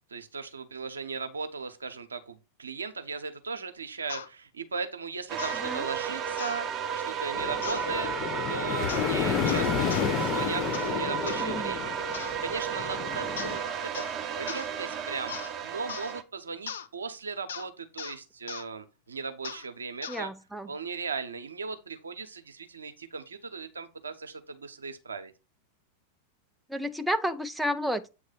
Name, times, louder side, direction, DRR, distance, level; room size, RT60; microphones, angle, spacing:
voice 1, 0.1-6.7 6.9-8.1 8.5-14.0 14.3-15.4 15.6-20.3 20.7-25.3, right 4 dB, 75° right, 0.9 m, -37 dB
sound 1, 4.1-4.3 5.4-5.6 6.4-6.6 7.6-7.9 8.9-9.1 9.5-10.1 10.7-10.9 11.3-11.5 12.1-12.4 13.4-13.6 13.9-14.2 14.5-14.7 15.3-15.5 15.9-16.1 16.7-16.9 17.5-17.7 18.0-18.2 18.5-18.7 19.4-19.7 20.0-20.2, left 7 dB, 65° left, 0.6 m, -39 dB
sound 2, 5.3-16.2, right 7 dB, 30° right, 0.8 m, -33 dB
voice 2, 5.5-5.9 11.4-11.8 20.1-20.7 26.7-28.1, equal, ahead, 0.5 m, -31 dB
sound 3, 7.3-13.6, left 7 dB, 35° left, 0.8 m, -31 dB
8.3 x 3.2 x 5.4 m
figure-of-eight pair, 90°, 0 cm